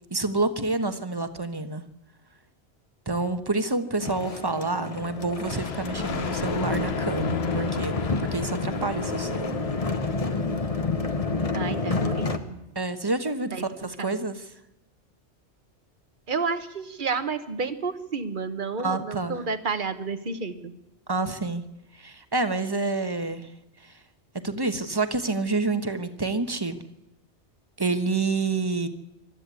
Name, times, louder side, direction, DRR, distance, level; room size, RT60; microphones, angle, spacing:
voice 1, 0.1-1.8 3.1-9.6 12.7-14.4 18.8-19.4 21.1-21.6 21.9-23.5 23.8-24.0 24.3-26.8 27.8-28.9, right 3 dB, 20° right, 9 dB, 1.2 m, -28 dB
sound 1, 4.0-12.4, left 3 dB, 35° left, 1.2 m, -29 dB
Thunder, 5.4-10.8, left 6 dB, 65° left, 1.3 m, -36 dB
voice 2, 11.5-12.6 13.5-13.6 14.0-14.3 16.3-20.7, right 4 dB, 50° right, 10 dB, 1.4 m, -31 dB
24.5 x 13.0 x 8.3 m, 0.86 s
omnidirectional pair, 1.1 m